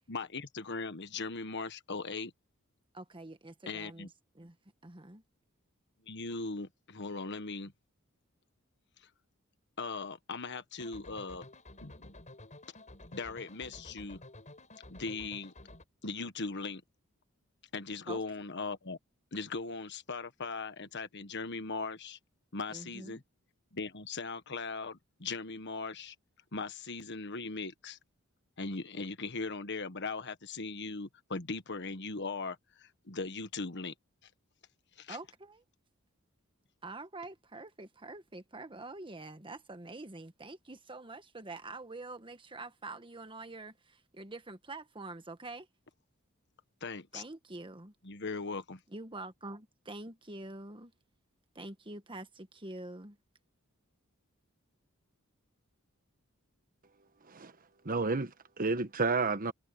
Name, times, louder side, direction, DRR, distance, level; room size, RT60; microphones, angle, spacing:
voice 1, 0.1-2.3 3.7-4.1 6.1-7.7 9.8-11.5 11.8-12.1 13.1-14.2 14.9-15.5 16.0-16.8 17.7-19.0 19.3-22.2 22.5-23.2 23.7-26.1 26.5-28.0 28.6-33.9 35.0-35.2 46.8-47.2 48.0-48.8, left 4 dB, 55° left, 1.4 m, -39 dB
voice 2, 2.9-4.1 4.3-4.6 4.8-5.2 18.1-18.2 22.7-23.2 35.1-35.6 36.8-45.7 47.1-47.9 48.9-50.9 51.5-53.2, right 2 dB, 25° right, 1.5 m, -46 dB
sound 1, 10.8-15.8, left 1 dB, 35° left, 7.0 m, -52 dB
voice 3, 57.8-59.5, right 4 dB, 40° right, 1.2 m, -31 dB
head